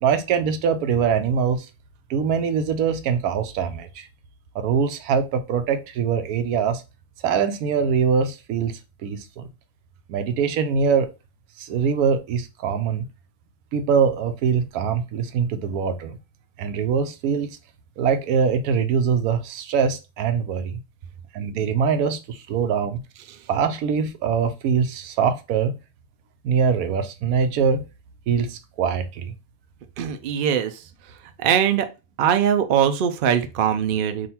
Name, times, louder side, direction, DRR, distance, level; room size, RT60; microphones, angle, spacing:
voice 1, 0.0-1.7 2.1-4.1 4.5-6.8 7.2-8.7 9.0-9.4 10.1-11.1 11.6-13.1 13.7-16.2 16.6-17.6 18.0-20.8 21.3-23.0 23.5-25.8 26.4-27.8 28.3-29.4, right 6 dB, 90° right, 1.1 m, -23 dB
voice 2, 30.0-30.8 31.4-31.9 32.2-34.3, right 9 dB, 65° right, 0.5 m, -21 dB
3.8 x 2.5 x 4.2 m
omnidirectional pair, 1.5 m